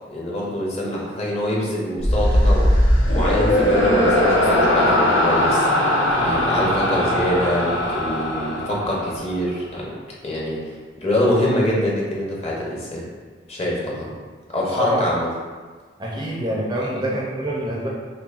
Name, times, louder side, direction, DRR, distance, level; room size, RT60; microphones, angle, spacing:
voice 1, 0.1-10.0 10.2-10.6 11.0-13.0 13.5-14.1 14.5-15.3 16.8-16.9, equal, 35° left, -4 dB, 0.8 m, -24 dB
sound 1, 2.0-9.4, left 1 dB, 80° left, 0.7 m, -19 dB
voice 2, 16.0-17.9, equal, 25° right, -4 dB, 0.4 m, -25 dB
5.5 x 2.1 x 2.4 m, 1.4 s
head